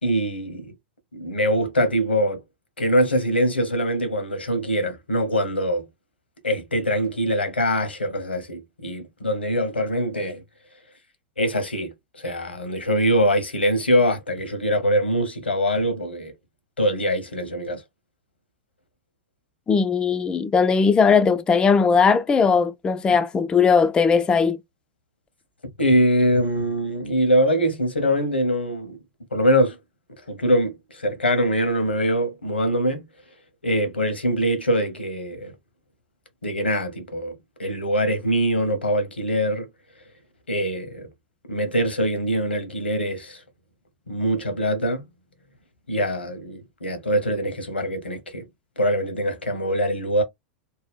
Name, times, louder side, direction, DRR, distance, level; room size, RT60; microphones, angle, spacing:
voice 1, 0.0-0.7 1.1-2.4 2.8-5.9 6.4-10.4 11.4-16.3 16.8-17.8 25.8-29.0 29.3-29.8 30.3-33.0 33.6-35.5 36.4-39.7 40.5-41.1 41.5-43.4 44.1-45.1 45.9-48.5 48.8-50.2, equal, 85° left, 0.9 m, -23 dB
voice 2, 19.7-24.6, left 5 dB, 15° left, 0.3 m, -18 dB
2.7 x 2.1 x 3.6 m
figure-of-eight pair, 95°, 6 cm